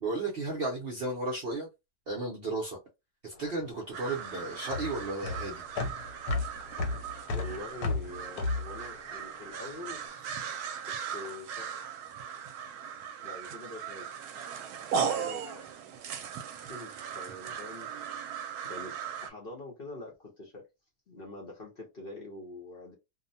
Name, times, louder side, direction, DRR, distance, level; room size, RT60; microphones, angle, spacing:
voice 1, 0.0-1.7 2.1-2.8 3.2-5.6, right 2 dB, 55° right, 0.7 m, -34 dB
sound 1, 3.3-9.9, left 3 dB, 75° left, 1.1 m, -34 dB
sound 2, 3.9-19.3, right 7 dB, 75° right, 1.0 m, -38 dB
voice 2, 7.3-10.0 10.8-11.7 13.2-14.1 15.0-15.6 16.6-17.9 18.6-20.6 21.1-22.9, left 1 dB, 45° left, 0.8 m, -45 dB
2.7 x 2.1 x 2.6 m
omnidirectional pair, 1.7 m